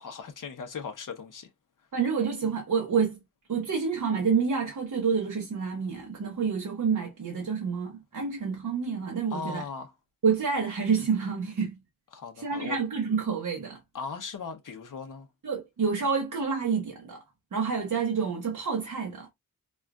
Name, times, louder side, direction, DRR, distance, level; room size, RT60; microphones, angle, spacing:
voice 1, 0.0-1.5 9.3-9.9 12.1-12.8 13.9-15.3, left 5 dB, 70° left, 0.8 m, -38 dB
voice 2, 1.9-3.2 3.5-9.6 10.2-11.7 12.4-13.8 15.4-17.2 17.5-19.3, right 5 dB, 70° right, 1.0 m, -28 dB
5.2 x 2.4 x 2.3 m
wide cardioid pair, 120°, 33 cm